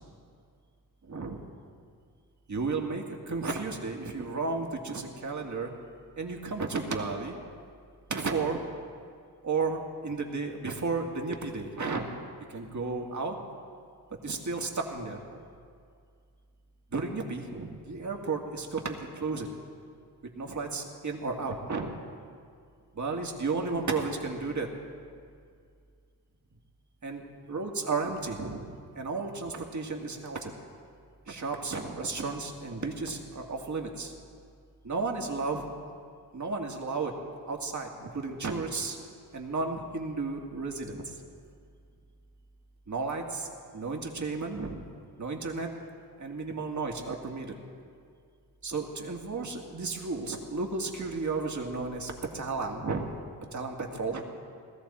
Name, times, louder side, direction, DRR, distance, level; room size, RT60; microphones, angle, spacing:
voice 1, 1.1-1.4 2.5-5.7 6.2-7.4 8.1-8.7 9.4-12.1 12.5-13.3 14.2-15.2 16.9-19.5 20.4-21.9 23.0-24.7 27.0-27.2 27.5-30.5 31.3-34.1 34.8-35.7 36.3-37.1 37.5-39.0 39.3-41.0 42.9-43.5 43.7-44.8 45.2-45.7 46.2-47.5 48.6-53.1 53.5-54.2, right 4 dB, 45° right, 1 dB, 2.1 m, -33 dB
18.5 x 13.5 x 4.3 m, 2.2 s
cardioid pair, 65°, 40 cm